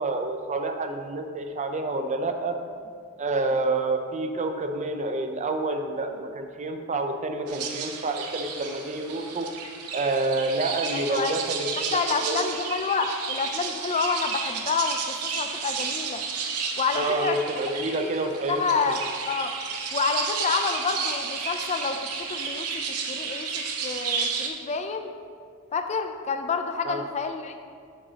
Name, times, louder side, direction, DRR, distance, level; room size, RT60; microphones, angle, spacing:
voice 1, 0.0-2.6 3.2-9.5 9.9-12.0 12.3-12.5 17.0-19.0 26.9-27.0, right 2 dB, 30° right, 5 dB, 0.5 m, -28 dB
sound 1, 7.5-24.5, right 5 dB, 75° right, 0.8 m, -32 dB
voice 2, 10.9-11.4 11.9-15.0 15.4-16.2 16.8-17.4 18.5-19.5 19.9-25.1 25.7-27.6, left 5 dB, 30° left, 7 dB, 0.4 m, -28 dB
8.6 x 6.9 x 2.8 m, 2.1 s
head